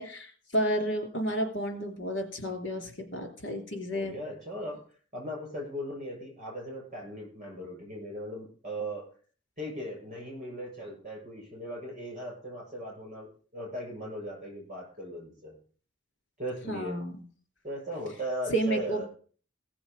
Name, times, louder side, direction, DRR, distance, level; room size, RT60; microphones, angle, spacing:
voice 1, 0.0-4.1 16.7-17.2 18.5-19.0, right 1 dB, 65° left, 4 dB, 3.2 m, -31 dB
voice 2, 3.9-9.1 9.6-15.5 16.4-17.0 17.6-19.1, equal, 35° right, -1 dB, 7.2 m, -38 dB
16.5 x 7.0 x 5.3 m, 0.43 s
head